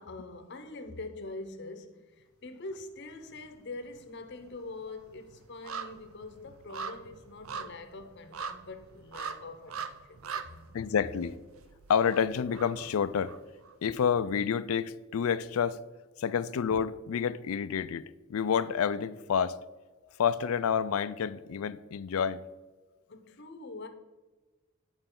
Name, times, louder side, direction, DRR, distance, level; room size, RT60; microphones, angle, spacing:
voice 1, 0.0-10.7 20.0-20.2 23.1-23.9, left 2 dB, 50° left, 0.7 m, -44 dB
sound 1, 2.7-3.5 3.8-13.7 14.1-14.2, right 6 dB, 70° right, 0.6 m, -43 dB
voice 2, 10.7-11.3 11.9-13.3 13.8-15.8 16.2-18.0 18.3-19.6 20.2-22.4, left 7 dB, 75° left, 0.4 m, -29 dB
8.9 x 5.2 x 3.8 m
head